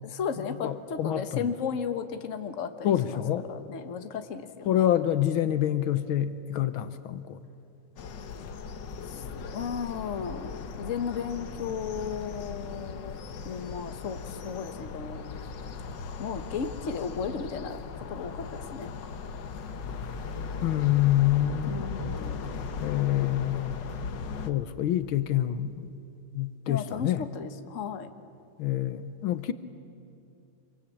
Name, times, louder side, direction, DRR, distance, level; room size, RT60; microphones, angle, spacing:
voice 1, 0.0-3.2 3.5-4.9 9.1-9.2 9.5-13.2 13.4-15.2 16.2-17.8 18.1-18.9 21.7-22.5 26.7-28.1, left 6 dB, 40° left, 8 dB, 1.4 m, -35 dB
voice 2, 0.6-1.2 2.8-3.5 4.7-7.4 20.6-21.8 22.8-23.9 24.5-25.9 26.3-27.2 28.6-29.5, left 12 dB, 80° left, 12 dB, 1.7 m, -26 dB
sound 1, 8.0-24.5, left 5 dB, 60° left, 1.8 m, -38 dB
26.0 x 24.0 x 8.5 m, 2.8 s
omnidirectional pair, 2.3 m